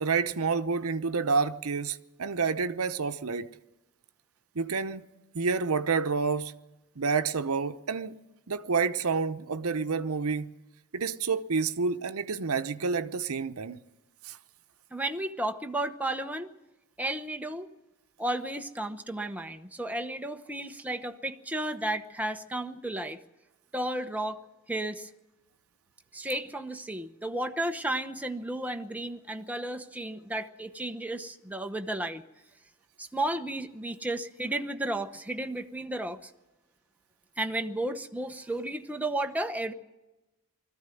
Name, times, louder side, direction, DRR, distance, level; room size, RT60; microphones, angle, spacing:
voice 1, 0.0-3.5 4.5-5.1 5.3-6.5 7.0-8.1 8.5-10.5 10.9-13.8 14.2-14.4, right 5 dB, 80° right, 0.8 m, -29 dB
voice 2, 14.9-16.5 17.0-17.7 18.2-23.2 23.7-24.4 24.7-25.1 26.1-32.2 33.0-36.3 37.4-39.7, right 1 dB, 5° right, 0.9 m, -33 dB
21.0 x 14.5 x 9.1 m
head